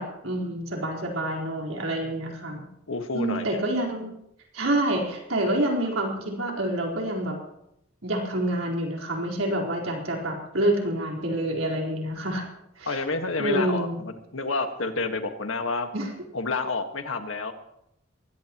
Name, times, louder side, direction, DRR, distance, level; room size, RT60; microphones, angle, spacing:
voice 1, 0.0-2.7 3.1-4.1 4.5-7.4 8.0-12.5 12.8-13.0 13.4-14.0 15.9-16.1, right 1 dB, 85° right, -1 dB, 4.3 m, -27 dB
voice 2, 2.9-3.6 12.8-15.9 16.3-17.5, left 3 dB, 80° left, 6 dB, 1.6 m, -29 dB
24.0 x 16.5 x 3.1 m, 0.80 s
head